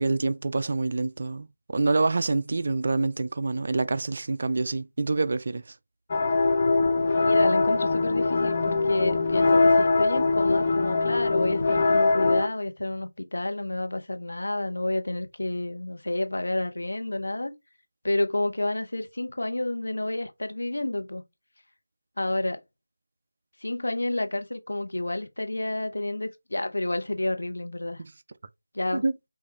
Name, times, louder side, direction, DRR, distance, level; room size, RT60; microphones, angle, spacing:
voice 1, 0.0-5.8 28.9-29.1, right 3 dB, 35° right, 0.3 m, -26 dB
sound 1, 6.1-12.5, left 3 dB, 25° left, 0.5 m, -22 dB
voice 2, 7.2-17.5 18.0-21.2 22.2-22.6 23.6-28.0 28.7-29.1, left 2 dB, 55° left, 0.9 m, -30 dB
5.1 x 2.5 x 3.3 m
figure-of-eight pair, 165°, 0 cm